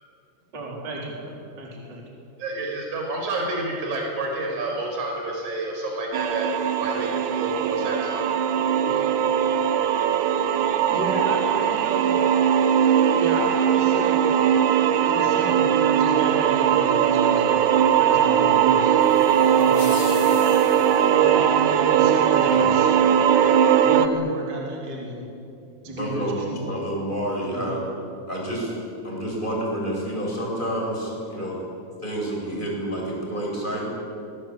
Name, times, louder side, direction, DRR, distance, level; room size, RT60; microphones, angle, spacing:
voice 1, 0.5-2.0 10.9-12.2 13.1-14.3 15.0-17.6 18.0-18.9 19.5-20.0 21.1-23.0 23.8-25.3 25.8-26.6 27.5-27.8, right 1 dB, 25° right, -2 dB, 4.4 m, -33 dB
voice 2, 2.4-6.5 6.8-8.3 8.9-9.0, right 2 dB, 45° right, 0 dB, 6.6 m, -29 dB
sound 1, 6.1-24.1, right 9 dB, 75° right, 1.9 m, -20 dB
sound 2, 19.0-21.2, left 7 dB, 50° left, 2.8 m, -39 dB
voice 3, 25.8-27.8 28.3-28.7 29.0-31.6 32.0-33.9, right 1 dB, 10° left, -3 dB, 7.7 m, -29 dB
27.0 x 21.5 x 9.0 m, 2.6 s
omnidirectional pair, 5.0 m